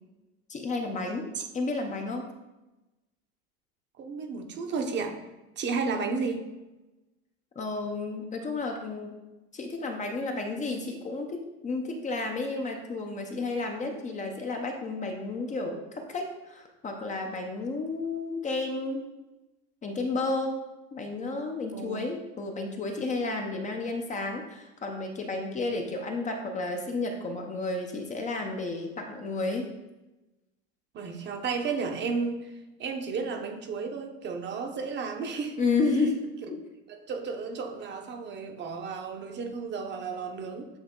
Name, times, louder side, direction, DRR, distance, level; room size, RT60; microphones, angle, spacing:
voice 1, 0.5-1.3 1.5-2.3 7.6-9.2 9.5-19.1 19.8-20.6 20.9-29.7 35.6-36.6, left 3 dB, 25° left, 3 dB, 0.7 m, -32 dB
voice 2, 4.0-5.2 5.6-6.5 21.7-22.0 30.9-32.5 32.8-35.6 36.9-40.7, right 4 dB, 35° right, 4 dB, 0.9 m, -33 dB
8.0 x 3.4 x 3.8 m, 1.0 s
supercardioid pair, 125°, 32 cm